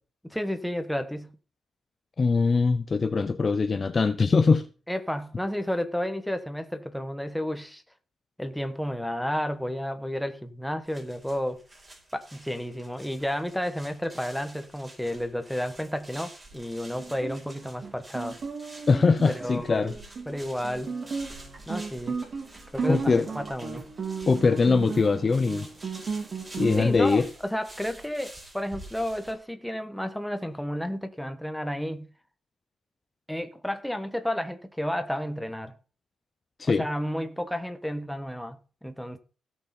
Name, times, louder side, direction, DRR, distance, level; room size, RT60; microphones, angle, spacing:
voice 1, 0.2-1.4 4.9-7.8 8.4-11.6 12.1-18.4 19.3-19.9 20.3-20.9 21.7-22.2 22.7-23.9 26.8-32.1 33.3-35.7 36.6-39.2, equal, ahead, 1.3 m, -32 dB
voice 2, 2.2-4.7 18.9-19.9 22.9-23.3 24.3-25.7 26.6-27.3 36.6-36.8, left 4 dB, 30° left, 0.7 m, -22 dB
sound 1, 10.8-29.3, right 1 dB, 20° right, 5.0 m, -49 dB
Guitar, 17.0-27.0, right 5 dB, 45° right, 2.5 m, -35 dB
16.5 x 6.3 x 4.4 m
cardioid pair, 120°, 0 cm